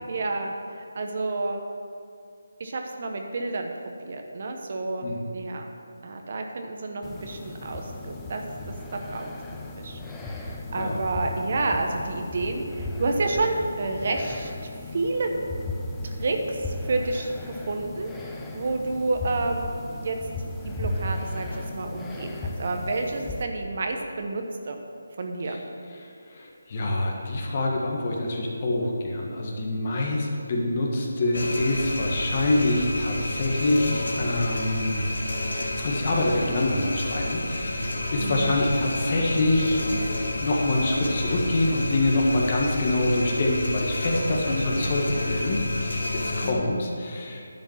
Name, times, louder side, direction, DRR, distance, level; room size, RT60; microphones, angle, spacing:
voice 1, 0.1-1.6 2.6-3.7 4.0-5.7 6.0-8.4 8.9-14.5 14.9-15.3 16.0-20.2 20.6-24.8 25.2-25.6 38.2-38.6 44.1-45.4 46.4-46.8, right 3 dB, 45° right, 3 dB, 1.0 m, -30 dB
sound 1, 7.0-23.4, left 2 dB, 10° left, 0.6 m, -36 dB
voice 2, 26.3-35.1 35.8-39.8 40.4-46.0 46.4-47.4, left 2 dB, 35° left, -1 dB, 1.5 m, -25 dB
sound 2, 31.3-46.5, left 2 dB, 70° left, 1.5 m, -30 dB
10.5 x 5.1 x 7.3 m, 2.4 s
figure-of-eight pair, 160°, 0 cm